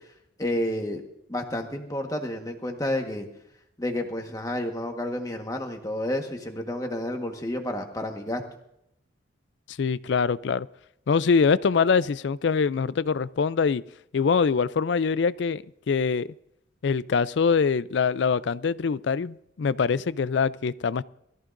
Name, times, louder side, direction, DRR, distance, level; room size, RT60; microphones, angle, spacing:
voice 1, 0.4-1.0 1.3-3.3 3.8-8.4, left 1 dB, 15° left, 3 dB, 1.4 m, -30 dB
voice 2, 9.8-10.7 11.1-13.8 14.1-16.3 16.8-21.0, left 5 dB, 65° left, 18 dB, 0.4 m, -24 dB
21.0 x 14.0 x 2.6 m, 0.78 s
head